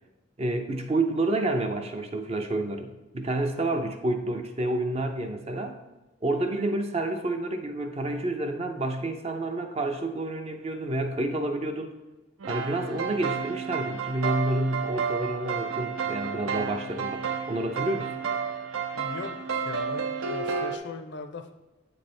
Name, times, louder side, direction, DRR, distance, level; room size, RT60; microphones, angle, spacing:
voice 1, 0.4-5.8 6.2-11.9 12.5-18.2, right 2 dB, 30° right, 5 dB, 0.5 m, -29 dB
sound 1, 12.4-20.8, right 6 dB, 80° right, 0.6 m, -31 dB
voice 2, 18.9-21.5, left 3 dB, 55° left, 7 dB, 0.5 m, -39 dB
8.3 x 3.3 x 4.2 m, 1.1 s
head